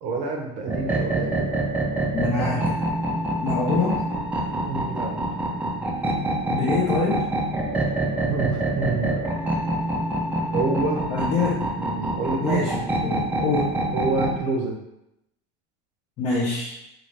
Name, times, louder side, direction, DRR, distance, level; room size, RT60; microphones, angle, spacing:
voice 1, 0.0-1.5 4.6-5.4 8.3-9.2 10.5-11.0 11.8-12.6 13.9-14.8, right 3 dB, 55° right, 1 dB, 0.8 m, -28 dB
sound 1, 0.7-14.4, right 1 dB, 10° right, 0.5 m, -26 dB
voice 2, 2.1-2.8 3.4-4.0 6.5-7.3 11.1-11.6 12.4-13.7 16.2-16.8, left 4 dB, 45° left, -6 dB, 0.7 m, -25 dB
2.7 x 2.5 x 3.2 m, 0.85 s
supercardioid pair, 125°, 15 cm